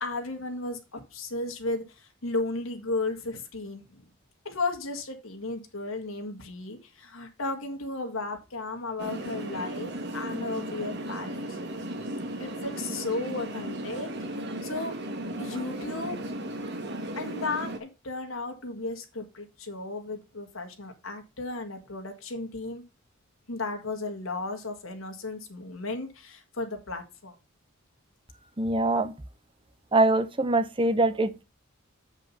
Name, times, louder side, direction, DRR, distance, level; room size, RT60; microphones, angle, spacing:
voice 1, 0.0-4.0 4.5-11.6 12.4-14.1 14.6-15.0 15.4-16.2 17.2-22.8 23.5-27.3, left 3 dB, 80° left, 1.8 m, -34 dB
sound 1, 9.0-17.8, right 1 dB, 55° right, 1.6 m, -35 dB
voice 2, 28.6-29.1 29.9-31.4, right 2 dB, 25° right, 0.8 m, -23 dB
7.4 x 5.2 x 5.5 m
head